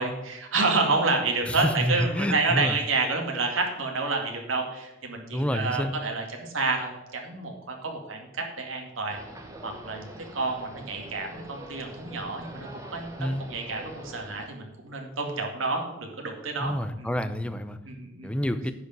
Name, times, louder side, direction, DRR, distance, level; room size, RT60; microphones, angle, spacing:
voice 1, 0.0-9.2 9.6-17.1 17.9-18.3, right 3 dB, 80° right, 2 dB, 2.2 m, -29 dB
voice 2, 1.5-2.8 5.3-5.9 13.2-13.4 16.6-17.8 18.2-18.7, equal, 5° left, 10 dB, 0.6 m, -28 dB
sound 1, 9.1-14.5, right 1 dB, 15° right, 1.3 m, -44 dB
10.0 x 5.1 x 7.8 m, 0.95 s
head